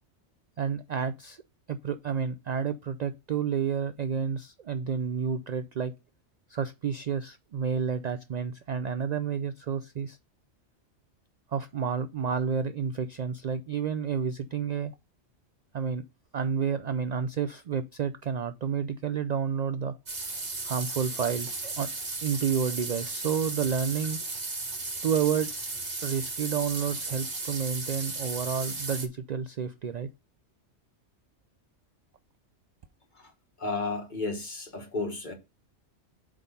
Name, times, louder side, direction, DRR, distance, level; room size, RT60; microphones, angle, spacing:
voice 1, 0.6-1.4 1.7-5.9 6.5-10.2 11.5-14.9 15.7-16.0 16.3-20.0 20.6-21.9 22.2-24.2 25.0-25.5 26.0-30.1, right 7 dB, 60° right, 0.4 m, -30 dB
sound 1, 20.1-29.1, right 3 dB, 40° right, 1.4 m, -35 dB
voice 2, 33.6-35.3, left 3 dB, 40° left, 1.6 m, -32 dB
8.1 x 3.8 x 5.4 m
omnidirectional pair, 1.2 m